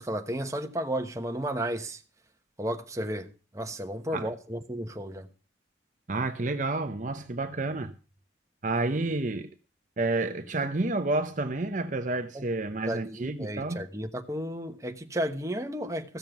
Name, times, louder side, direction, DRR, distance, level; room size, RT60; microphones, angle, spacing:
voice 1, 0.0-2.0 2.6-5.3 12.3-12.5 12.9-16.2, right 1 dB, 15° right, 1.1 m, -33 dB
voice 2, 6.1-7.9 8.6-9.5 10.0-13.8, right 2 dB, 40° right, 0.8 m, -30 dB
15.0 x 7.3 x 6.0 m
head